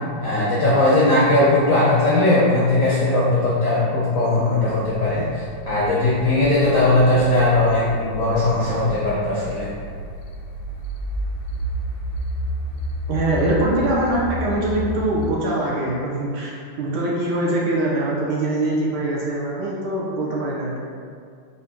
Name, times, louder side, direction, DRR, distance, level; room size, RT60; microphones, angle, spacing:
voice 1, 0.2-9.7, left 2 dB, 70° left, -8 dB, 0.8 m, -19 dB
sound 1, 4.0-15.3, equal, 85° left, 1.4 m, -31 dB
voice 2, 13.1-20.7, right 1 dB, 70° right, -4 dB, 1.1 m, -23 dB
4.1 x 2.6 x 3.5 m, 2.2 s
omnidirectional pair, 2.1 m